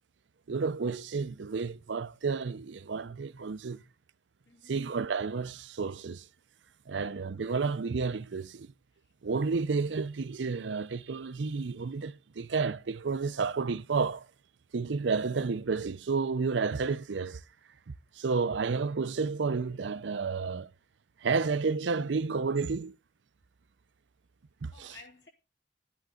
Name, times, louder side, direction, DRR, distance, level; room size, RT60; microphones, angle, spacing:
voice 1, 0.5-3.8 4.7-6.3 6.9-8.7 9.2-14.3 14.7-17.4 18.2-20.7 21.2-22.9 24.6-24.9, right 4 dB, 85° right, 0.6 m, -31 dB
voice 2, 4.4-4.9 6.9-7.1 9.0-9.1 18.3-18.5 24.7-25.3, left 4 dB, 70° left, 3.7 m, -55 dB
11.5 x 10.5 x 3.7 m
head